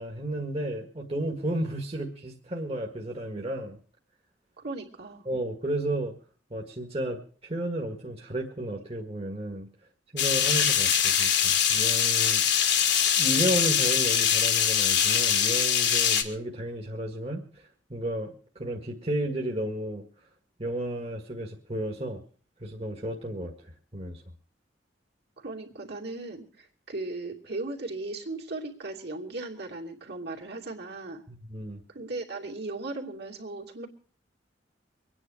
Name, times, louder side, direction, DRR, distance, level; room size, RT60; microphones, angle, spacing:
voice 1, 0.0-3.8 5.3-6.1 6.5-9.7 10.1-12.4 13.2-20.0 20.6-22.2 22.6-23.5 23.9-24.2 31.3-31.8, right 1 dB, 35° right, 0 dB, 1.8 m, -33 dB
voice 2, 4.6-5.3 25.4-31.2 31.9-33.9, right 2 dB, 60° right, 0 dB, 2.9 m, -37 dB
sound 1, 10.2-16.2, left 8 dB, 65° left, 1.8 m, -23 dB
24.5 x 9.9 x 4.9 m, 0.43 s
head